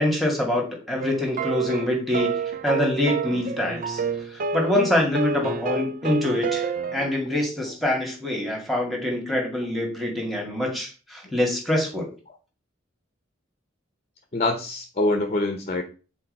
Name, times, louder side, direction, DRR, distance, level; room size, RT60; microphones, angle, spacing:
voice 1, 0.0-4.0 4.3-12.1, left 1 dB, ahead, 0 dB, 1.9 m, -25 dB
sound 1, 1.0-7.2, right 4 dB, 45° right, 0.5 m, -29 dB
voice 2, 14.3-15.8, left 2 dB, 35° left, 6 dB, 0.8 m, -25 dB
8.7 x 4.0 x 5.3 m, 0.36 s
head